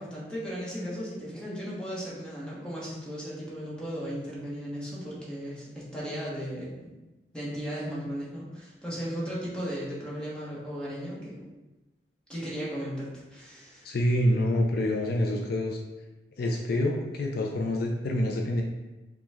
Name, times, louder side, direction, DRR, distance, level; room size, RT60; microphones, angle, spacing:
voice 1, 0.0-6.9 7.3-11.5 12.3-13.9, equal, 5° left, -7 dB, 1.1 m, -36 dB
voice 2, 13.8-15.8 16.4-18.6, left 1 dB, 60° left, 1 dB, 0.4 m, -26 dB
5.0 x 2.3 x 3.5 m, 1.1 s
head